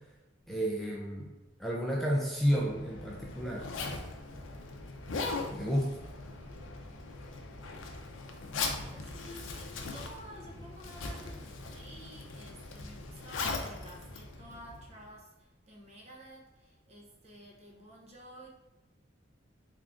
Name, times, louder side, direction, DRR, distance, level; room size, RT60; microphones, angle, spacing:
voice 1, 0.5-1.3 1.6-3.6 5.5-6.0, equal, ahead, -4 dB, 0.4 m, -31 dB
Zipper (clothing), 2.4-15.1, left 3 dB, 85° left, 0.5 m, -40 dB
voice 2, 4.8-5.9 6.4-7.8 8.7-18.5, right 1 dB, 35° right, -1 dB, 0.7 m, -53 dB
3.6 x 3.5 x 2.4 m, 1.1 s
head